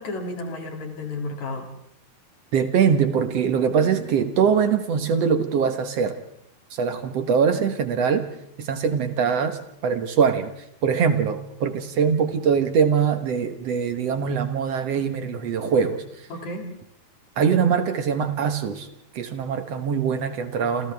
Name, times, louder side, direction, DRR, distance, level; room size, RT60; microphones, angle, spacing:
voice 1, 0.0-1.7 16.3-16.7, left 2 dB, 50° left, 3 dB, 4.0 m, -32 dB
voice 2, 2.5-6.2 6.7-8.2 8.6-10.5 10.8-16.3 17.4-18.9 19.1-20.9, right 6 dB, 60° right, 8 dB, 1.8 m, -22 dB
28.5 x 28.0 x 3.5 m, 0.73 s
omnidirectional pair, 4.3 m